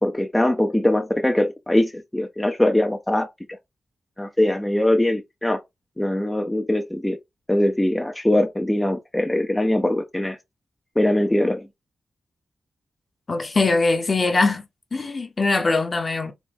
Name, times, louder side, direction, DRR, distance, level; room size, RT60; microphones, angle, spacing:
voice 1, 0.0-3.3 4.2-5.6 6.0-7.2 7.5-10.4 11.0-11.7, left 1 dB, 10° left, 0.4 m, -21 dB
voice 2, 13.3-14.6 14.9-16.3, left 3 dB, 40° left, 0.8 m, -21 dB
4.0 x 2.2 x 3.4 m
cardioid pair, 80°, 0 cm